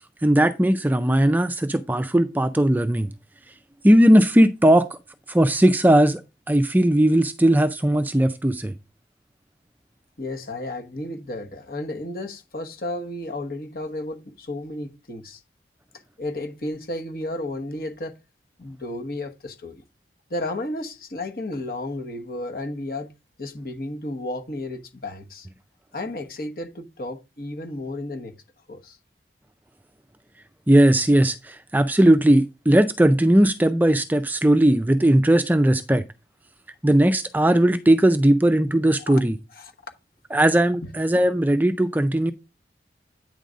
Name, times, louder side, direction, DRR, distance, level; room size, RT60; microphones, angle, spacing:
voice 1, 0.2-3.1 3.8-4.9 5.3-6.2 6.5-8.7 30.7-36.0 36.8-39.4 40.3-42.3, right 1 dB, 10° right, 0.4 m, -18 dB
voice 2, 10.2-15.4 16.2-18.2 18.6-19.8 20.3-23.1 23.4-25.5 25.9-28.3 28.7-29.0 39.0-39.2 39.5-39.7 40.8-40.9, left 1 dB, 55° left, 1.2 m, -33 dB
9.1 x 3.9 x 5.0 m
head